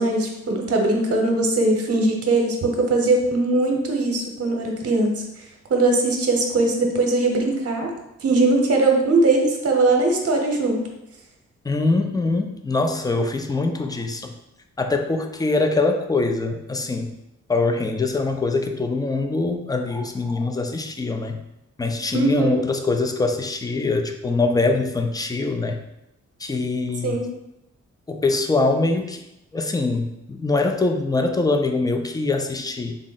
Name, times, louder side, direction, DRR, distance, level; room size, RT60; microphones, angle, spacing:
voice 1, 0.0-5.2 5.7-7.9 8.2-10.8 22.1-22.5 27.0-27.2, right 2 dB, 55° right, 1 dB, 0.8 m, -20 dB
voice 2, 11.6-14.3 14.8-17.1 17.5-21.4 21.8-25.8 26.4-27.2 28.1-29.2 29.5-33.0, left 3 dB, 15° left, 5 dB, 0.3 m, -23 dB
3.8 x 2.0 x 3.9 m, 0.87 s
wide cardioid pair, 95°, 30 cm